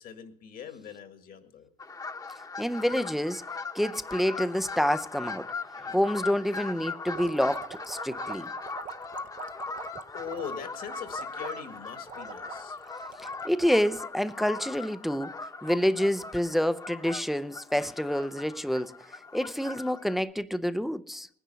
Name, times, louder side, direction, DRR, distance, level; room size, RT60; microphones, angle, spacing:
voice 1, 0.0-1.7 8.8-9.3 10.1-13.0 15.6-15.7, left 7 dB, 60° left, 1.9 m, -42 dB
sound 1, 1.8-20.2, left 4 dB, 20° left, 1.0 m, -39 dB
voice 2, 2.6-3.4 3.7-5.5 5.8-8.5 13.2-15.3 15.6-18.9 19.3-21.3, equal, ahead, 0.5 m, -28 dB
sound 2, 7.1-14.4, right 9 dB, 50° right, 0.8 m, -45 dB
20.0 x 10.0 x 5.7 m
cardioid pair, 110°, 17 cm